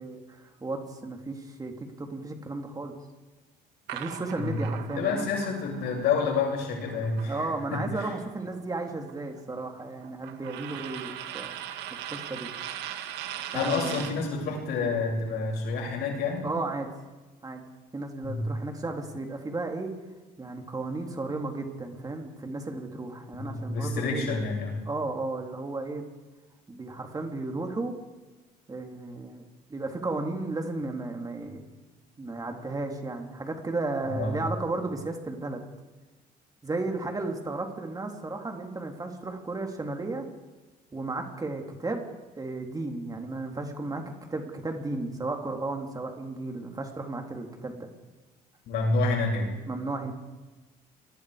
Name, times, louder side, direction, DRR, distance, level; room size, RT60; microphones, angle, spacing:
voice 1, 0.0-2.9 3.9-5.3 7.3-11.5 12.1-12.5 13.5-14.2 16.4-16.9 17.4-17.6 17.9-19.9 20.4-24.4 24.8-26.0 26.7-28.0 28.7-31.6 32.2-35.6 36.6-40.3 40.9-42.0 42.4-47.9 49.7-50.1, right 2 dB, 20° right, 3 dB, 3.3 m, -34 dB
sound 1, 3.9-8.0 8.3-14.2, right 11 dB, 90° right, 2.0 m, -40 dB
voice 2, 4.4-8.1 13.5-16.5 18.2-18.5 23.3-24.8 34.1-34.4 48.7-49.5, left 4 dB, 75° left, 1 dB, 7.7 m, -29 dB
29.0 x 21.5 x 5.1 m, 1.2 s
cardioid pair, 110°, 17 cm